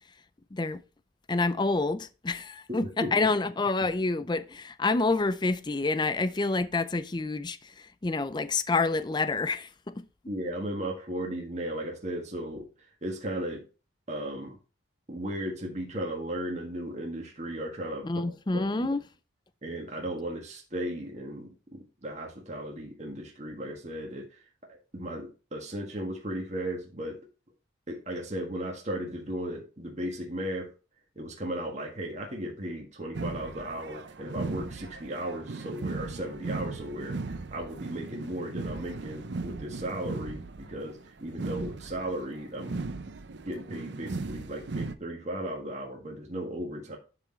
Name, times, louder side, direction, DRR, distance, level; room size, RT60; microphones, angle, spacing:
voice 1, 0.5-0.8 1.3-10.1 18.0-19.0, left 3 dB, 20° left, 0.4 m, -28 dB
voice 2, 2.7-3.1 10.3-12.6 13.0-13.6 14.1-14.6 15.1-18.1 18.5-18.9 19.6-24.4 24.7-27.2 27.9-30.7 31.1-42.8 43.1-47.0, right 1 dB, 35° right, 1.6 m, -36 dB
sound 1, 33.1-44.9, right 3 dB, 65° right, 0.6 m, -37 dB
11.5 x 4.1 x 4.4 m
head